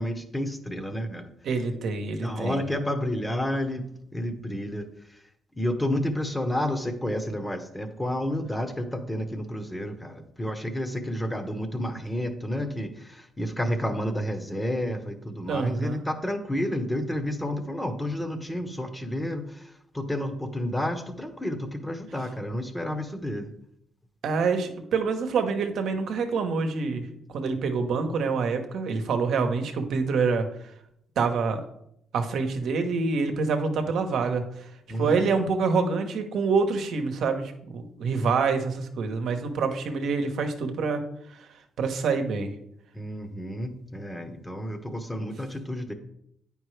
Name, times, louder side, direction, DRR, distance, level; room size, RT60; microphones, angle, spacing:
voice 1, 0.0-1.3 2.2-5.2 5.6-23.5 34.9-35.2 42.9-45.9, left 1 dB, 10° left, 7 dB, 1.0 m, -30 dB
voice 2, 1.4-2.6 15.5-16.0 24.2-30.5 31.2-31.6 32.1-34.7 35.0-41.0 41.8-42.5, right 4 dB, 70° right, 6 dB, 1.0 m, -26 dB
8.9 x 5.2 x 3.2 m, 0.74 s
cardioid pair, 90°, 0 cm